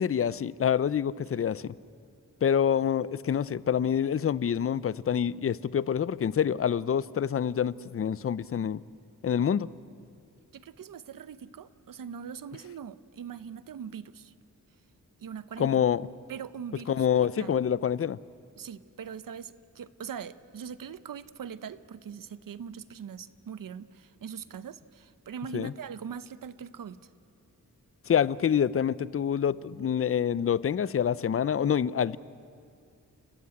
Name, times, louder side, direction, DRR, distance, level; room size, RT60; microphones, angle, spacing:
voice 1, 0.0-1.7 2.4-8.8 9.2-9.7 15.6-16.1 16.9-18.2 25.5-25.7 28.1-32.2, left 8 dB, 45° left, 19 dB, 0.5 m, -26 dB
voice 2, 10.5-14.3 15.2-15.7 16.3-17.6 18.6-27.0, right 7 dB, 80° right, 15 dB, 0.8 m, -41 dB
29.5 x 14.5 x 9.7 m, 2.4 s
wide cardioid pair, 155°, 33 cm